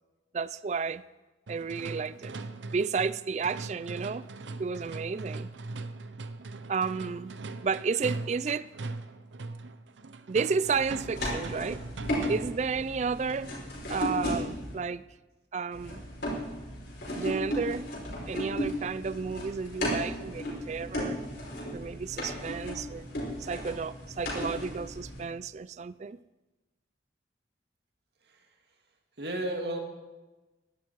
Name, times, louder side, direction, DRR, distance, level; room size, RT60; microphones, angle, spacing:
voice 1, 0.3-1.0 1.5-2.4 2.7-4.2 4.6-5.5 6.7-7.3 7.6-8.7 10.3-11.8 12.3-13.5 13.9-15.0 15.5-16.1 17.1-17.9 18.3-21.2 21.7-23.1 23.4-26.2, right 5 dB, 40° right, 17 dB, 0.3 m, -32 dB
sound 1, 1.5-12.7, right 3 dB, 85° right, 0.7 m, -40 dB
sound 2, 10.6-14.7 15.7-25.2, equal, 65° left, 5.3 m, -35 dB
voice 2, 29.2-29.8, right 1 dB, 65° right, 3 dB, 2.2 m, -33 dB
16.5 x 12.0 x 4.7 m, 1.2 s
head